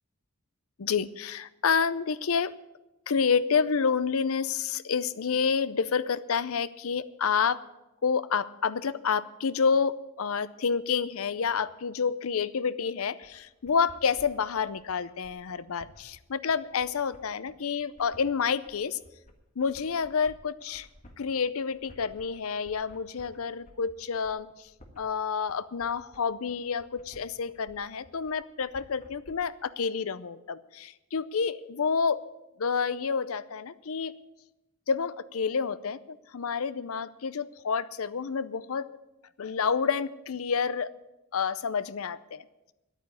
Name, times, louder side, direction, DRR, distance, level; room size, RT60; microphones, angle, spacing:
voice 1, 0.8-2.5 3.1-7.6 8.0-19.0 19.6-20.9 21.2-24.7 25.0-32.2 32.6-34.2 34.9-38.9 39.4-40.9 41.3-42.4, left 6 dB, 70° left, 16 dB, 0.6 m, -29 dB
sound 1, 13.2-29.3, equal, 35° left, 1.5 m, -55 dB
10.5 x 9.0 x 9.6 m, 0.98 s
head